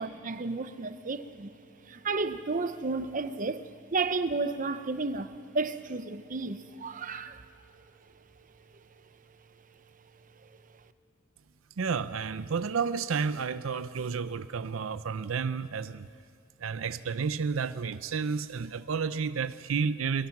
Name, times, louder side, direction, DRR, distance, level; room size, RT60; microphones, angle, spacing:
voice 1, 0.0-1.5 1.8-7.5 7.7-7.8 10.4-10.5, right 3 dB, 40° right, 0.8 m, -32 dB
voice 2, 11.8-16.1 16.6-20.3, right 5 dB, 85° right, 0.6 m, -31 dB
23.0 x 22.5 x 6.0 m
head